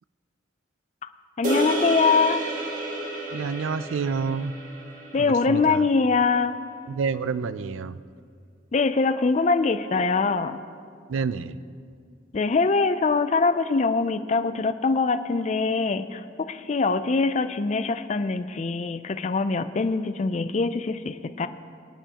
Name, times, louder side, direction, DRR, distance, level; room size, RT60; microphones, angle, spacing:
voice 1, 1.4-2.4 5.1-6.6 8.7-10.6 12.3-21.5, left 4 dB, 35° left, 10 dB, 0.4 m, -23 dB
sound 1, 1.4-5.9, right 1 dB, 45° right, 1.5 m, -31 dB
voice 2, 3.3-4.5 5.2-5.8 6.9-8.0 11.1-11.6, right 5 dB, 85° right, 15 dB, 0.4 m, -28 dB
23.5 x 9.2 x 2.9 m, 2.3 s
head